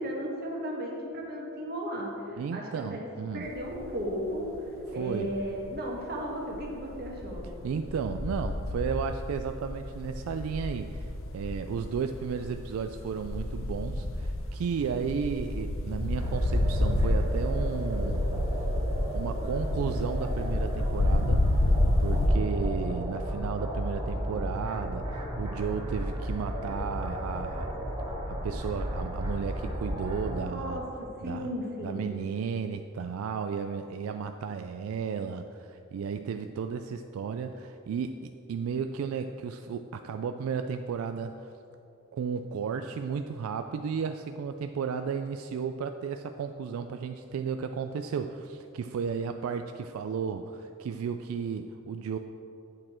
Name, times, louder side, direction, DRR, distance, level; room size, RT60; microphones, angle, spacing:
voice 1, 0.0-3.1 3.3-4.5 4.9-7.5 30.2-30.8 31.2-32.0, equal, 50° right, -1 dB, 1.5 m, -35 dB
voice 2, 2.4-3.5 4.9-5.3 7.6-18.2 19.1-27.7 28.3-30.8 31.2-31.5 31.8-41.5 42.1-52.2, right 6 dB, 85° right, 7 dB, 0.3 m, -34 dB
sound 1, 3.5-4.1 4.5-5.8 6.3-22.3, left 1 dB, 70° left, 0.7 m, -30 dB
sound 2, 16.2-30.4, equal, 25° right, 2.1 m, -34 dB
8.5 x 6.6 x 4.3 m, 2.8 s
head